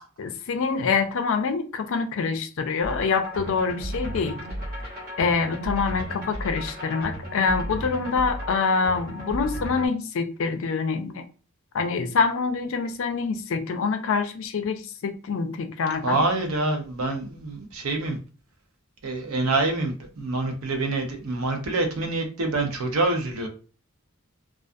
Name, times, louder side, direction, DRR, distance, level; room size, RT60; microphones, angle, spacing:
voice 1, 0.2-4.4 5.2-11.3 11.7-16.2, left 5 dB, 65° left, 0.4 m, -25 dB
sound 1, 2.8-9.9, right 1 dB, 45° right, 0.8 m, -34 dB
voice 2, 16.0-18.2 19.0-23.5, right 2 dB, 80° right, 0.7 m, -26 dB
2.4 x 2.3 x 2.5 m
head